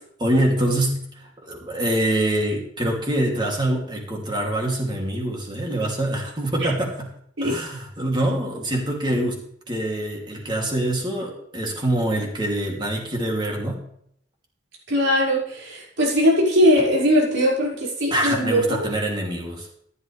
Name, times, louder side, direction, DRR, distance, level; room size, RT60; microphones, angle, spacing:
voice 1, 0.2-7.1 7.4-13.8 18.1-19.7, right 1 dB, 25° right, 0 dB, 2.9 m, -25 dB
voice 2, 14.9-18.8, equal, 85° right, -5 dB, 5.8 m, -20 dB
14.5 x 11.5 x 3.4 m, 0.69 s
head